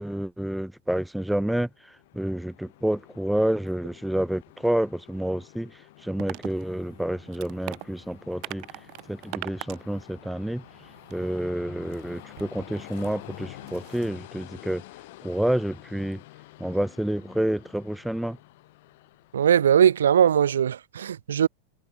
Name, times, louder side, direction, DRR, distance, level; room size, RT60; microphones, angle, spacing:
voice 1, 0.0-1.7 2.1-5.7 6.0-8.6 9.1-10.6 11.1-14.8 15.2-16.2 16.6-18.4, right 1 dB, ahead, 0.6 m, -28 dB
Train, 1.7-20.3, left 19 dB, 50° left, 3.2 m, -49 dB
Walking on gravel wood thumping, 6.2-14.1, right 25 dB, 40° right, 6.2 m, -43 dB
voice 2, 19.3-21.5, right 9 dB, 65° right, 0.6 m, -20 dB
figure-of-eight pair, 90°, 0 cm